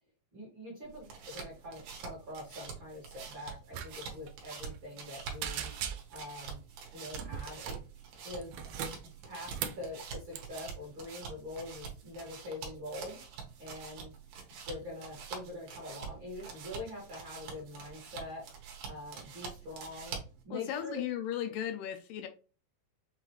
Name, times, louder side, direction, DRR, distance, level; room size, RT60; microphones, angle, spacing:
voice 1, 0.3-5.7 6.1-6.6 6.9-7.8 8.2-8.5 9.2-13.2 13.6-14.1 14.7-18.5 18.9-20.1 20.4-21.0, left 2 dB, 45° right, 1.7 m, -44 dB
sound 1, 0.8-20.4, right 6 dB, 70° right, 2.5 m, -46 dB
sound 2, 3.7-4.3 4.7-5.1 5.4-6.3 7.1-7.9 8.4-9.9 10.3-10.6, right 8 dB, 90° right, 1.6 m, -39 dB
voice 2, 20.5-22.3, left 10 dB, 80° left, 2.1 m, -36 dB
6.6 x 2.6 x 3.0 m
omnidirectional pair, 4.1 m